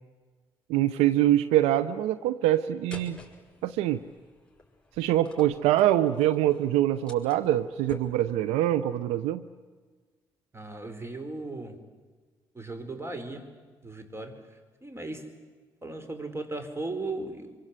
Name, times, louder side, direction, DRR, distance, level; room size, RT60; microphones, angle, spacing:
voice 1, 0.7-3.2 3.6-4.0 5.0-9.4, right 13 dB, 80° right, 14 dB, 0.7 m, -24 dB
sound 1, 2.9-8.6, left 2 dB, 10° left, 6.2 m, -49 dB
voice 2, 10.5-11.8 12.5-13.5 13.8-15.3 15.8-17.6, right 2 dB, 25° right, 9 dB, 4.4 m, -37 dB
26.5 x 24.0 x 8.2 m, 1.4 s
hypercardioid pair, 50°, 10 cm